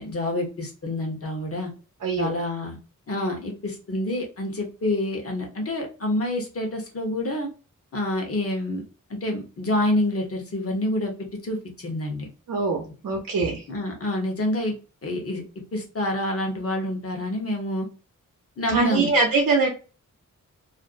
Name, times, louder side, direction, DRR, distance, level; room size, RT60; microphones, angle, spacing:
voice 1, 0.0-1.7 2.2-2.8 3.1-7.5 7.9-8.8 9.1-11.1 11.4-12.3 13.7-15.4 15.7-17.9 18.6-19.1, left 1 dB, 45° left, 2 dB, 0.9 m, -27 dB
voice 2, 2.0-2.3 12.5-13.6 18.7-19.7, right 4 dB, 70° right, 2 dB, 0.6 m, -23 dB
2.5 x 2.1 x 2.4 m, 0.34 s
wide cardioid pair, 110°, 33 cm